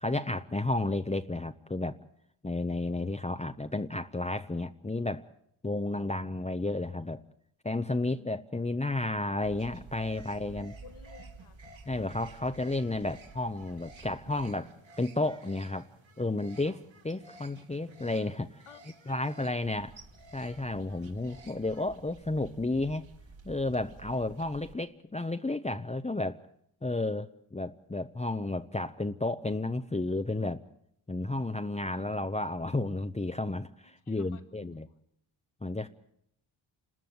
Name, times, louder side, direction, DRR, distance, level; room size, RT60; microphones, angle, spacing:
voice 1, 0.0-2.0 2.4-5.3 5.6-7.2 7.6-10.7 11.9-14.7 15.0-15.9 16.2-18.6 19.1-19.9 20.3-23.1 23.4-26.4 26.8-30.6 31.1-34.9 35.6-35.9, left 2 dB, 15° left, 8 dB, 0.9 m, -32 dB
sound 1, 9.4-24.7, right 3 dB, 65° right, 3.1 m, -52 dB
voice 2, 10.1-11.6 18.7-18.8 19.1-19.8 20.7-20.9 24.1-24.2 31.9-32.1 33.8-34.8, left 6 dB, 85° left, 6 dB, 2.4 m, -55 dB
28.0 x 13.5 x 9.5 m, 0.72 s
cardioid pair, 60°, 49 cm